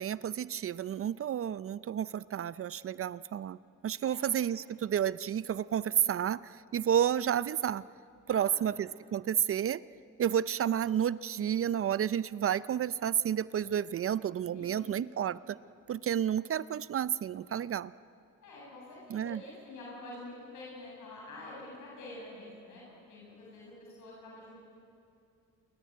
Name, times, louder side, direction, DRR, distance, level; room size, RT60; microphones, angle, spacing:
voice 1, 0.0-3.6 3.8-7.8 8.3-9.8 10.2-15.6 15.9-17.9 19.1-19.4, right 9 dB, 50° right, 18 dB, 0.5 m, -31 dB
voice 2, 4.0-4.4 8.3-8.7 14.5-15.0 18.4-22.8 23.1-24.5, left 2 dB, 75° left, -4 dB, 7.8 m, -47 dB
27.0 x 23.0 x 9.4 m, 2.5 s
cardioid pair, 90°, 30 cm